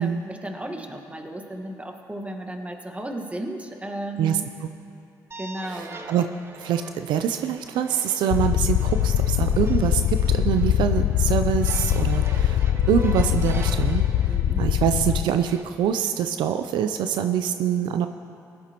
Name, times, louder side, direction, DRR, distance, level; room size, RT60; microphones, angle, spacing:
voice 1, 0.0-4.5 5.4-6.0 14.3-14.7, right 1 dB, 15° right, 4 dB, 1.4 m, -34 dB
voice 2, 4.2-4.7 5.7-6.3 6.5-18.1, right 9 dB, 80° right, 8 dB, 0.4 m, -25 dB
sound 1, 5.3-15.6, right 2 dB, 35° right, 1.0 m, -43 dB
sound 2, 8.3-15.2, left 11 dB, 75° left, 0.4 m, -22 dB
17.5 x 11.5 x 2.9 m, 2.8 s
supercardioid pair, 60°, 8 cm